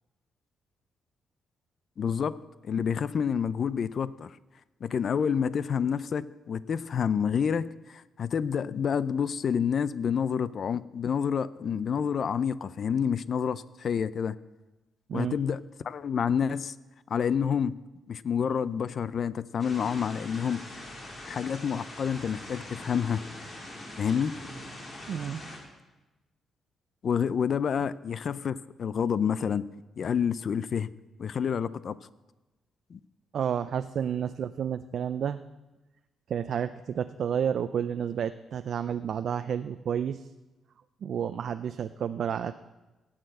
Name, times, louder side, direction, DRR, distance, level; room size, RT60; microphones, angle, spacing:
voice 1, 2.0-2.4 2.6-4.4 4.8-14.4 15.1-16.7 17.1-17.7 18.1-20.6 21.2-23.2 24.0-24.3 27.0-29.6 30.0-30.9 31.2-32.0 32.9-33.0, left 7 dB, 50° left, 17 dB, 0.5 m, -28 dB
sound 1, 19.6-25.6, left 1 dB, 30° left, 3.7 m, -43 dB
voice 2, 25.1-25.4 33.3-35.4 36.3-40.3 41.0-42.5, right 8 dB, 55° right, 10 dB, 0.5 m, -30 dB
17.0 x 8.9 x 7.8 m, 1.1 s
cardioid pair, 135°, 0 cm